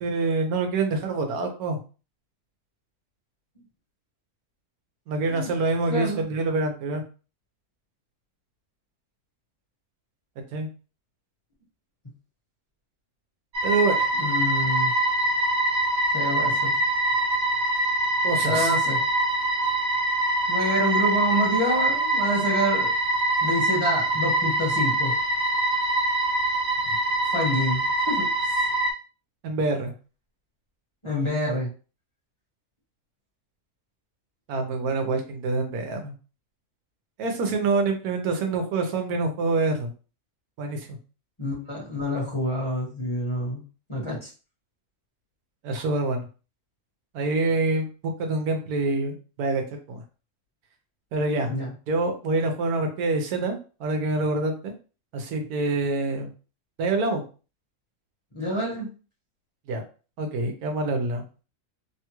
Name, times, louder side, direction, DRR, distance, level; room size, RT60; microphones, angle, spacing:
voice 1, 0.0-1.8 5.1-7.0 10.4-10.7 13.6-14.1 18.2-18.7 29.4-29.9 34.5-36.1 37.2-39.9 40.6-40.8 45.6-46.2 47.1-49.6 49.9-50.0 51.1-51.5 51.9-54.7 55.1-56.3 56.8-57.2 59.7-59.8 60.2-61.2, right 3 dB, 85° right, 4 dB, 1.2 m, -26 dB
voice 2, 5.9-6.3 14.2-14.9 16.1-16.7 18.5-19.0 20.5-22.9 23.4-25.1 27.3-28.3 31.0-31.7 41.4-43.6 43.9-44.3 51.4-51.7 58.3-58.9, equal, 25° left, -5 dB, 0.9 m, -27 dB
sound 1, 13.5-28.9, right 1 dB, 70° right, 0.4 m, -24 dB
3.1 x 2.2 x 2.9 m, 0.35 s
omnidirectional pair, 1.6 m